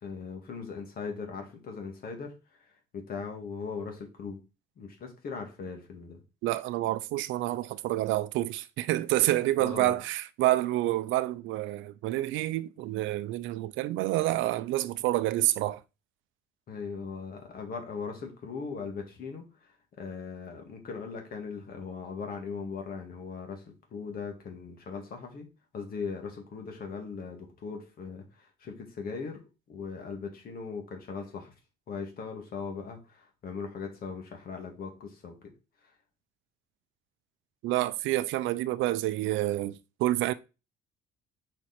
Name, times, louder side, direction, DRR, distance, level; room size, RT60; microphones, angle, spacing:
voice 1, 0.0-4.4 4.8-6.2 9.6-10.0 16.7-25.5 25.7-29.4 29.7-31.5 31.9-35.5, left 5 dB, 50° left, 2.1 m, -39 dB
voice 2, 6.4-15.8 37.6-40.3, right 16 dB, 80° right, 0.5 m, -28 dB
5.8 x 4.7 x 4.3 m
cardioid pair, 130°, 20 cm